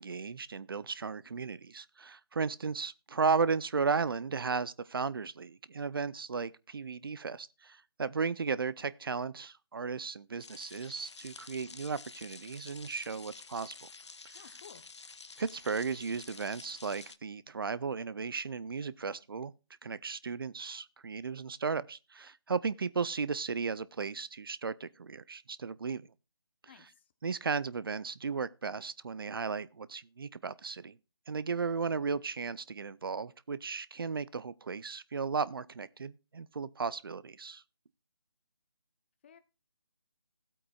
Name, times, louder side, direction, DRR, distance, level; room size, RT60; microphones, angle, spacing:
voice 1, 0.0-13.9 14.2-14.4 15.4-19.5 19.8-26.0 27.2-31.0 31.3-37.6, right 5 dB, 55° right, 0.5 m, -35 dB
sound 1, 10.4-17.2, left 4 dB, 85° left, 0.7 m, -50 dB
voice 2, 14.3-14.8 26.6-27.0 39.2-39.4, left 8 dB, 25° left, 0.8 m, -54 dB
16.0 x 8.5 x 2.3 m
figure-of-eight pair, 160°, 14 cm